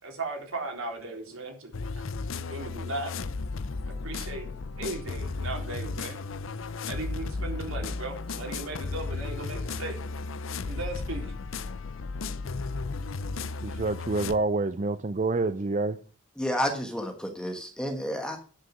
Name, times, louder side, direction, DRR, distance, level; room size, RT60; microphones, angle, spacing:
voice 1, 0.0-1.7 2.3-3.1 3.9-4.5 4.8-6.2 6.8-10.0 10.7-11.3, right 2 dB, 80° right, 1 dB, 4.0 m, -37 dB
sound 1, 1.7-14.4, left 4 dB, 65° left, 0.6 m, -34 dB
voice 2, 13.6-16.0, right 3 dB, 35° right, 11 dB, 0.5 m, -27 dB
voice 3, 16.4-18.4, equal, 5° left, 4 dB, 1.2 m, -30 dB
11.5 x 6.5 x 6.1 m, 0.39 s
head